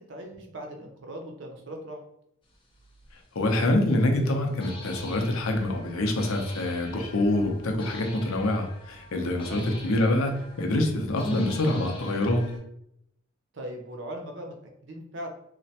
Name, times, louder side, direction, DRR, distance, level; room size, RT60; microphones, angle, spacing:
voice 1, 0.0-2.0 9.5-9.7 13.5-15.3, right 1 dB, 55° right, 3 dB, 0.5 m, -39 dB
sound 1, 3.0-3.1 4.6-12.6, left 1 dB, 25° left, 0.5 m, -41 dB
voice 2, 3.4-12.4, left 1 dB, 75° left, 3 dB, 0.6 m, -26 dB
3.1 x 2.1 x 2.8 m, 0.76 s
head